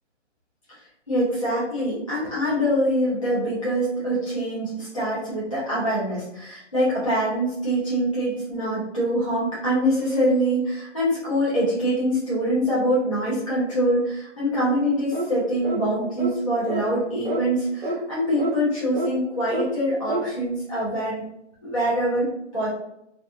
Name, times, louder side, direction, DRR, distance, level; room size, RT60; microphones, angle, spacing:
voice 1, 1.1-21.3 21.6-22.3 22.5-22.7, equal, 30° left, -10 dB, 0.4 m, -24 dB
sound 1, 15.1-15.3 15.6-15.8 16.2-16.4 16.7-16.8 17.2-17.4 17.8-18.0 18.4-18.5 18.9-19.1 19.5-19.7 20.1-20.3, right 2 dB, 50° right, 0.6 m, -27 dB
2.5 x 2.2 x 2.5 m, 0.81 s
hypercardioid pair, 180°, 36 cm